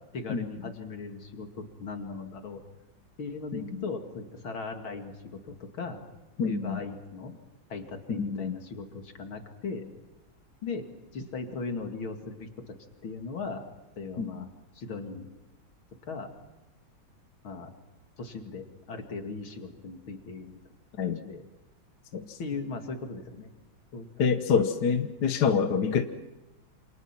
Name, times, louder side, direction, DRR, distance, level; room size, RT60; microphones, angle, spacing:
voice 1, 0.1-2.6 3.2-6.0 6.5-7.4 7.7-9.9 10.6-10.9 11.1-12.7 13.0-13.7 14.0-14.5 14.7-15.3 16.1-16.3 17.4-17.7 18.2-20.6 21.0-21.5 22.4-23.5 23.9-24.3, left 4 dB, 70° left, 4 dB, 3.2 m, -38 dB
voice 2, 3.5-3.8 6.4-6.8 8.2-8.6 14.2-14.4 21.0-21.2 22.1-22.4 24.2-26.0, left 6 dB, 55° left, 7 dB, 1.6 m, -27 dB
28.0 x 28.0 x 6.0 m, 1.1 s
omnidirectional pair, 2.3 m